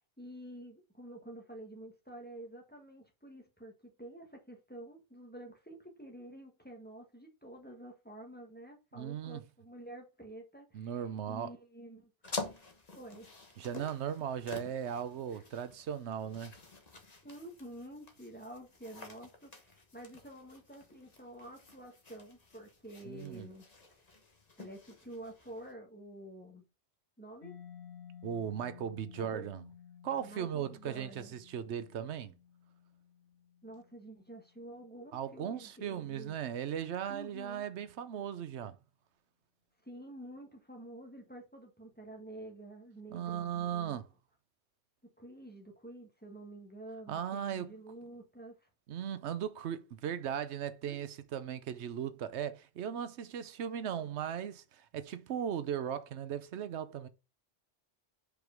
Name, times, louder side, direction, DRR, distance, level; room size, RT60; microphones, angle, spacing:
voice 1, 0.2-11.0 11.3-12.1 12.9-13.3 15.3-15.4 17.2-23.6 23.9-24.0 24.6-26.6 27.2-27.6 29.2-29.4 30.2-31.3 33.6-36.3 37.1-37.7 39.8-44.0 45.2-48.7 50.9-51.0, right 1 dB, 10° left, 1.4 m, -49 dB
voice 2, 9.0-9.4 10.7-11.5 13.6-16.5 23.0-23.5 28.2-29.6 30.0-32.3 35.1-38.8 43.1-44.1 47.1-47.8 48.9-57.1, right 9 dB, 90° right, 1.0 m, -37 dB
sound 1, 12.2-25.7, left 3 dB, 40° left, 1.3 m, -48 dB
Mallet percussion, 27.4-34.9, left 8 dB, 80° left, 1.4 m, -55 dB
5.2 x 4.6 x 5.1 m
omnidirectional pair, 1.1 m